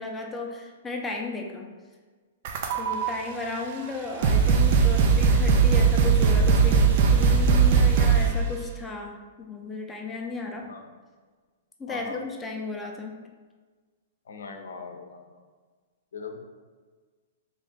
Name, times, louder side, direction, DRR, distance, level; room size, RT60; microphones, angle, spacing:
voice 1, 0.0-1.7 2.7-10.7 11.8-13.1, left 3 dB, 10° left, 0 dB, 0.5 m, -34 dB
sound 1, 2.4-3.1 3.8-3.9 4.2-8.4, right 5 dB, 55° right, 0.4 m, -19 dB
voice 2, 11.9-12.2 14.3-15.2 16.1-16.4, left 4 dB, 80° left, 3 dB, 0.6 m, -39 dB
3.2 x 2.5 x 3.6 m, 1.4 s
hypercardioid pair, 130°, 0 cm